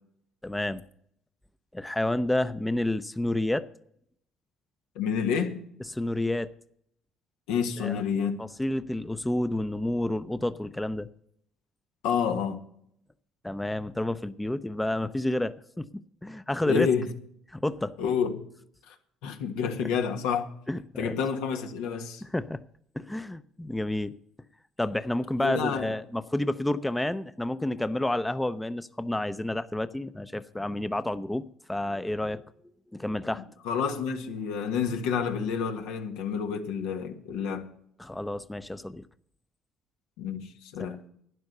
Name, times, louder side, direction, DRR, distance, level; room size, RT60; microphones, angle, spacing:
voice 1, 0.4-0.8 1.7-3.7 5.9-6.5 7.8-8.0 8.4-11.1 13.4-15.9 16.2-16.9 17.5-17.9 19.8-19.9 20.7-21.1 22.2-22.6 22.9-24.2 24.8-32.4 32.9-33.4 38.0-39.0 40.8-41.0, left 1 dB, 10° left, 0.6 m, -30 dB
voice 2, 5.0-5.6 7.5-8.4 12.0-12.6 16.7-17.1 18.0-18.4 18.9-19.0 19.2-20.5 21.0-22.2 25.4-25.9 33.6-37.7 40.2-41.0, left 6 dB, 85° left, 1.6 m, -29 dB
12.0 x 9.4 x 6.7 m
supercardioid pair, 85°, 0 cm